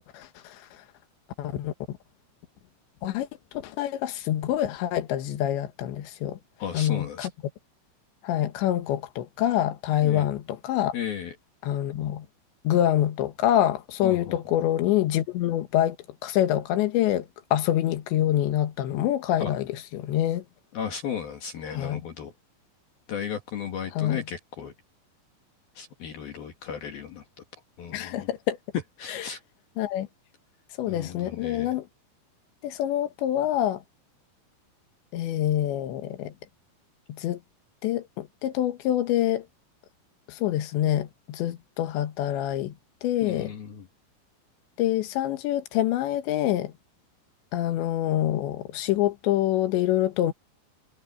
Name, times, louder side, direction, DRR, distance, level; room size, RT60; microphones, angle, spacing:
voice 1, 0.1-0.6 1.4-1.7 3.0-3.3 3.6-6.4 6.7-7.3 8.2-11.0 11.6-12.3 12.7-16.0 16.2-19.7 19.9-20.4 21.7-22.0 24.0-24.2 27.9-28.6 29.1-29.2 29.8-30.1 30.8-31.9 32.6-33.8 35.1-36.3 37.1-37.4 37.8-39.5 40.3-42.7 43.0-43.5 44.8-46.7 47.5-50.3, left 12 dB, 80° left, 3.7 m, -26 dB
voice 2, 6.6-7.3 10.0-10.3 10.9-11.3 14.0-14.4 19.4-19.5 20.7-22.3 23.1-24.7 25.8-27.2 27.8-28.3 29.0-29.4 30.9-31.8 43.2-43.9, left 8 dB, 60° left, 3.7 m, -35 dB
omnidirectional pair, 5.1 m